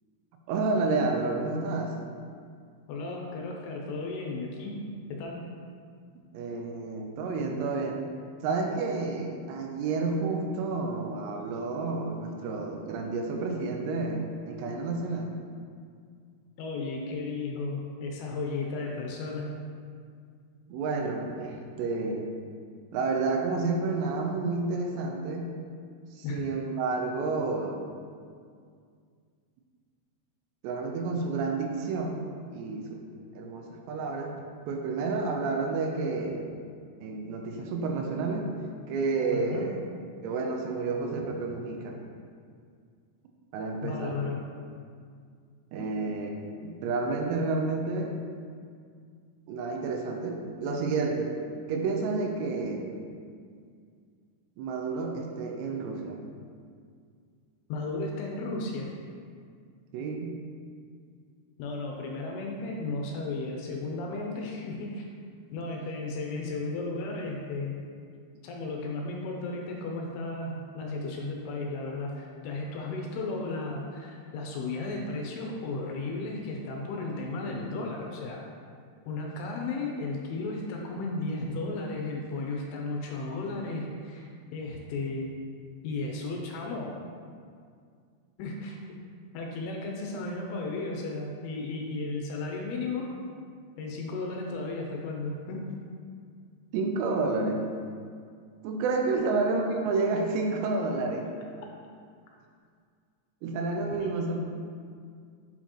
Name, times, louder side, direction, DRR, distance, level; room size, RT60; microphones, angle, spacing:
voice 1, 0.5-2.0 6.3-8.0 8.4-15.3 20.7-22.3 22.9-25.5 26.1-27.8 30.6-33.0 33.3-34.4 34.7-36.5 37.0-38.5 38.9-39.8 40.2-42.0 43.5-44.2 45.7-46.4 46.6-48.1 49.5-51.3 51.7-52.9 54.6-56.2 59.9-60.3 96.7-97.7 98.6-101.3 103.4-104.5, right 3 dB, 85° right, 2 dB, 2.8 m, -30 dB
voice 2, 2.9-4.8 5.1-5.4 16.6-19.5 26.2-26.4 39.3-39.7 43.8-44.4 45.8-45.9 57.7-58.9 61.6-65.1 65.5-67.8 68.4-78.4 79.1-85.3 85.8-86.9 88.4-89.0 89.3-93.1 93.8-95.7 99.1-99.3 103.9-104.3, left 3 dB, 80° left, 0 dB, 2.5 m, -34 dB
8.1 x 4.3 x 2.9 m, 2.1 s
omnidirectional pair, 4.9 m